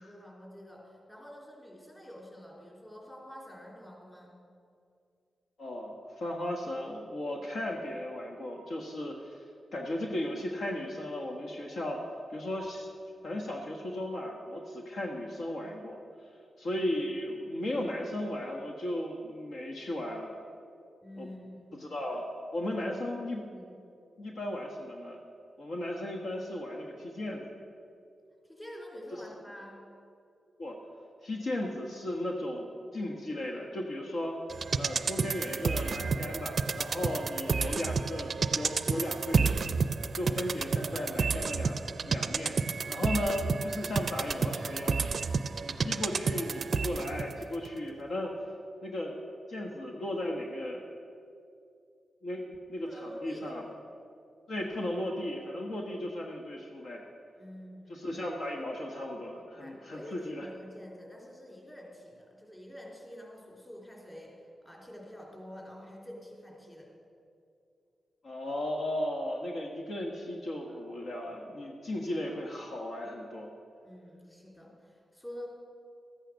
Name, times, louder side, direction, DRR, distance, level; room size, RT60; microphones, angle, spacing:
voice 1, 0.0-4.4 21.0-21.9 22.7-22.9 23.5-23.6 28.4-29.8 52.8-53.6 57.4-58.1 59.4-64.4 64.6-66.9 73.8-75.5, left 1 dB, 15° left, -3 dB, 3.4 m, -47 dB
voice 2, 5.6-9.4 9.7-12.9 13.2-16.0 16.6-20.4 21.2-21.3 21.8-23.4 24.2-25.2 25.6-27.4 30.6-30.8 31.2-34.4 34.8-39.6 40.1-41.8 42.0-42.6 42.9-45.1 45.6-48.3 48.8-49.1 49.5-50.8 52.2-53.6 54.5-57.1 57.9-60.5 68.2-73.5, left 1 dB, 65° left, 0 dB, 1.3 m, -36 dB
sound 1, 34.5-47.3 47.7-47.8, right 5 dB, 50° right, 0.5 m, -31 dB
14.0 x 8.9 x 6.4 m, 2.5 s
wide cardioid pair, 115°, 0 cm